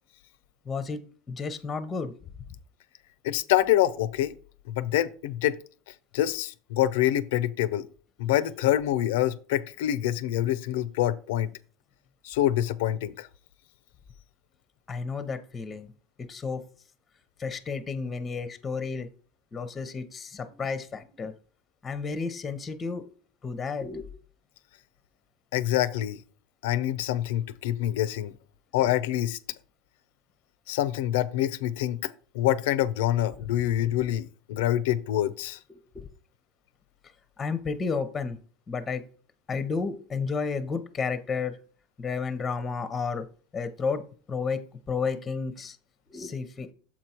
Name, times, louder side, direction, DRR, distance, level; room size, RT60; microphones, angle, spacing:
voice 1, 0.7-1.0 1.3-2.1 14.9-15.9 16.2-16.6 17.4-19.1 19.5-21.3 21.8-23.0 23.4-24.1 35.7-36.1 37.4-38.4 38.7-39.0 39.5-41.6 42.0-43.3 43.5-44.0 44.3-44.6 44.9-45.8 46.1-46.7, left 5 dB, 20° left, 0.8 m, -32 dB
voice 2, 3.2-4.4 4.7-5.6 6.1-7.9 8.2-11.5 12.2-13.3 25.5-26.2 26.6-28.3 28.7-29.4 30.7-35.6, left 13 dB, 85° left, 0.6 m, -26 dB
7.4 x 4.6 x 4.3 m
supercardioid pair, 135°, 0 cm